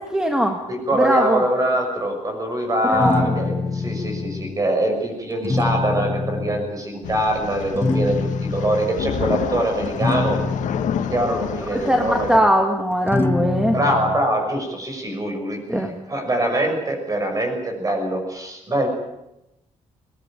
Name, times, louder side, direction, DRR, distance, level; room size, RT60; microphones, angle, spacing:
voice 1, 0.1-0.6 0.9-1.4 2.8-3.3 11.7-13.8 15.7-15.9, equal, 5° right, 4 dB, 1.8 m, -20 dB
voice 2, 0.7-10.4 11.1-12.4 13.7-18.9, right 1 dB, 30° right, 4 dB, 6.3 m, -23 dB
sound 1, 2.9-4.6 5.3-6.7 7.8-9.0 9.8-11.3 13.1-14.3, left 3 dB, 20° left, 1.1 m, -25 dB
sound 2, 7.0-12.4, left 8 dB, 80° left, 1.8 m, -29 dB
21.5 x 19.5 x 9.1 m, 0.91 s
cardioid pair, 150°, 13 cm